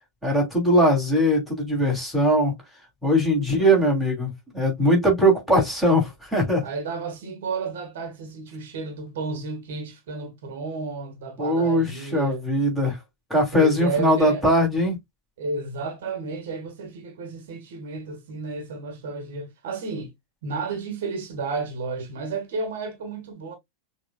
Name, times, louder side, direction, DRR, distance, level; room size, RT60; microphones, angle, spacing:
voice 1, 0.2-2.6 3.0-6.7 11.4-13.0 13.3-15.0, equal, 5° left, 3.1 m, -21 dB
voice 2, 3.3-3.9 6.6-12.4 13.5-14.5 15.4-20.1 20.4-23.6, right 4 dB, 55° right, 1.4 m, -32 dB
6.3 x 2.7 x 2.4 m
figure-of-eight pair, 90°, 0 cm